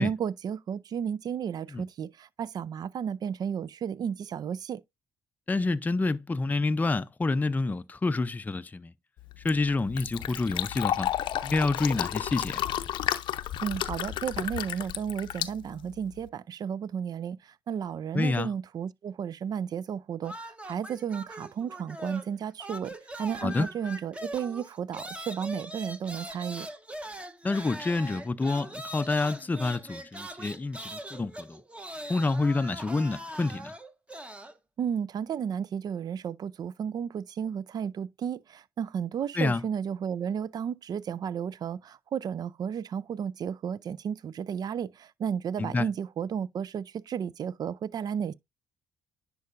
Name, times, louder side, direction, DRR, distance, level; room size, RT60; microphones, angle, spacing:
voice 1, 0.0-4.8 13.6-26.7 34.8-48.3, right 8 dB, 50° right, 0.4 m, -33 dB
voice 2, 5.5-8.9 9.4-11.1 11.4-12.7 18.1-18.5 23.4-23.7 27.4-31.6 32.1-33.7 39.4-39.6 45.6-45.9, left 3 dB, 20° left, 0.5 m, -28 dB
Fill (with liquid), 9.2-16.3, left 12 dB, 70° left, 0.6 m, -32 dB
Whiny female, 20.2-22.3 22.6-34.6, right 1 dB, 15° right, 1.0 m, -41 dB
10.5 x 4.6 x 2.5 m
supercardioid pair, 60°, 8 cm